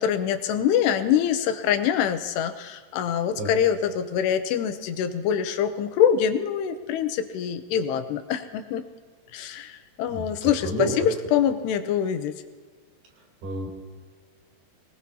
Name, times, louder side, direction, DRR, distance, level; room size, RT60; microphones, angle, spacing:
voice 1, 0.0-8.8 9.3-12.3, left 8 dB, 80° left, 9 dB, 2.9 m, -24 dB
voice 2, 10.1-11.1 13.4-13.7, right 1 dB, 65° right, -2 dB, 5.8 m, -30 dB
24.5 x 19.5 x 2.8 m, 1.5 s
omnidirectional pair, 4.9 m